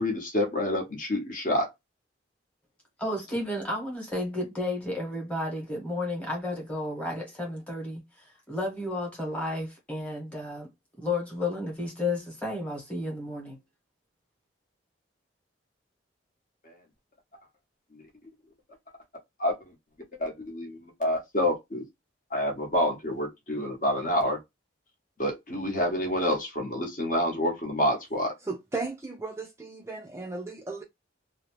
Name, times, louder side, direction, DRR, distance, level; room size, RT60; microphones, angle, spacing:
voice 1, 0.0-1.7 19.4-19.5 20.2-21.8 22.3-24.4 25.2-28.3, left 1 dB, 40° left, 0.8 m, -28 dB
voice 2, 3.0-10.7 11.0-13.6, left 2 dB, 5° left, 1.0 m, -32 dB
voice 3, 28.4-30.8, right 3 dB, 15° right, 0.3 m, -35 dB
2.6 x 2.0 x 2.9 m
head